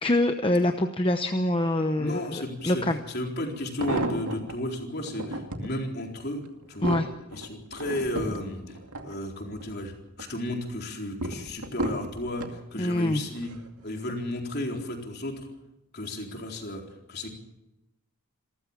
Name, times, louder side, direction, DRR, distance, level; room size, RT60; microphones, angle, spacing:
voice 1, 0.0-3.0 6.8-7.0 12.8-13.2, left 1 dB, 25° left, 6 dB, 0.9 m, -25 dB
voice 2, 2.0-6.4 6.7-7.0 7.3-8.8 9.0-13.5 13.8-15.5 15.9-16.8 17.1-17.3, left 1 dB, 45° left, 1 dB, 4.1 m, -33 dB
sound 1, 2.8-2.9 3.5-4.6 5.1-5.7 6.3-9.7 10.1-10.6 11.2-12.6 13.3-13.7 14.0-14.1, right 1 dB, 85° right, 2.3 m, -34 dB
27.5 x 14.0 x 7.4 m, 0.90 s
head